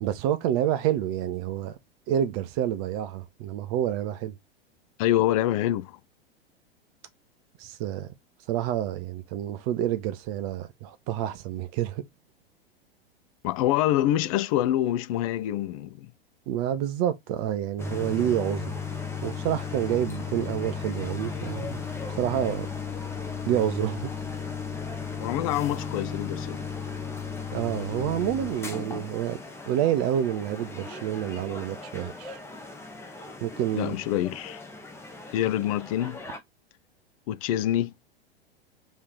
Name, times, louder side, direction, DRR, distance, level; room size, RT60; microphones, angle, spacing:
voice 1, 0.0-1.8 2.1-4.3 7.6-8.1 8.5-12.0 16.5-18.7 19.2-21.8 22.1-22.7 23.5-24.1 27.5-29.4 29.7-32.4 33.4-34.0, right 11 dB, 35° right, 0.7 m, -28 dB
voice 2, 5.0-6.0 13.4-16.1 25.2-26.7 33.7-34.6 35.3-36.2 37.3-37.9, left 13 dB, 35° left, 0.4 m, -26 dB
sound 1, 17.8-36.4, left 5 dB, 10° left, 0.7 m, -36 dB
3.2 x 3.1 x 3.7 m
figure-of-eight pair, 95°, 31 cm